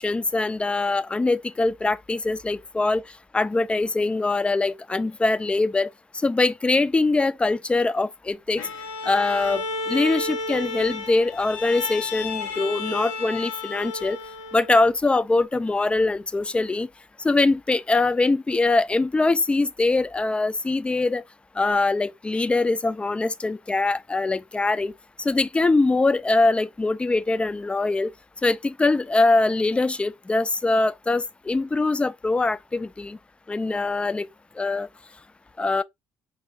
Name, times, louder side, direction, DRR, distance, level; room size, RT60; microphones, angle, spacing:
voice 1, 0.0-3.0 3.3-5.9 6.2-8.6 9.1-14.2 14.5-16.9 17.2-21.2 21.6-24.9 25.2-28.1 28.4-33.2 33.5-34.3 34.6-34.9 35.6-35.8, left 3 dB, 20° left, 0.5 m, -23 dB
Bowed string instrument, 8.6-14.9, left 3 dB, 85° left, 0.9 m, -32 dB
5.2 x 2.0 x 3.7 m
supercardioid pair, 70°, 6 cm